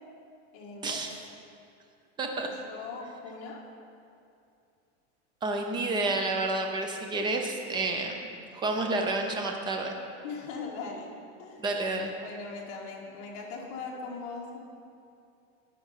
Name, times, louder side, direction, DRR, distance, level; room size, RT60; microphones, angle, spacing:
voice 1, 0.5-1.0 2.4-3.6 10.2-11.1 11.4-11.6 12.2-14.6, left 4 dB, 40° left, -2 dB, 1.7 m, -40 dB
voice 2, 2.2-2.5 5.4-8.3 8.5-10.0 11.6-12.1, right 2 dB, 15° right, 3 dB, 0.6 m, -30 dB
12.0 x 5.3 x 5.7 m, 2.5 s
supercardioid pair, 165°, 35 cm